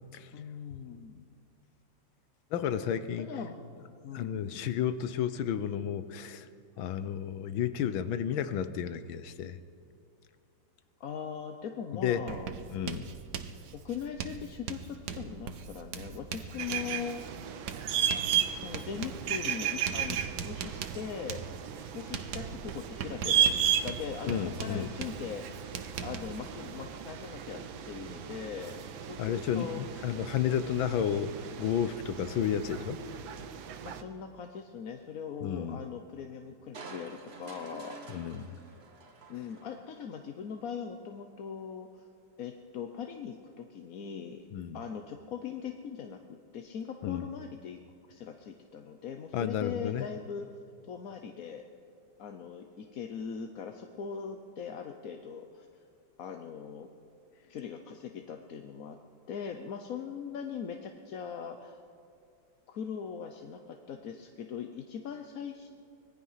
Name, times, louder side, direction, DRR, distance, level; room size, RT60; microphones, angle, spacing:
voice 1, 0.3-1.3 3.3-3.6 4.0-4.7 11.0-12.5 13.7-17.3 18.6-21.4 21.7-25.7 26.0-29.8 33.8-38.0 39.3-42.0 42.4-44.4 44.7-47.8 48.1-50.5 50.8-51.6 52.2-55.7 56.2-56.9 57.5-59.0 59.3-61.8 62.7-65.7, left 7 dB, 55° left, 5 dB, 1.1 m, -40 dB
voice 2, 2.5-3.3 4.1-6.5 6.8-9.6 12.0-12.2 12.7-13.1 24.3-24.9 29.2-33.0 35.4-35.8 38.1-38.6 44.5-44.8 47.0-47.3 49.3-50.1, left 9 dB, 85° left, 12 dB, 1.6 m, -32 dB
Writing, 12.3-26.4, right 7 dB, 60° right, 1.4 m, -41 dB
sound 1, 16.6-34.0, right 9 dB, 80° right, 1.7 m, -34 dB
Crushing, 36.7-40.1 40.6-40.7, right 4 dB, 35° right, 1.4 m, -48 dB
25.0 x 18.5 x 5.7 m, 2.5 s
omnidirectional pair, 2.1 m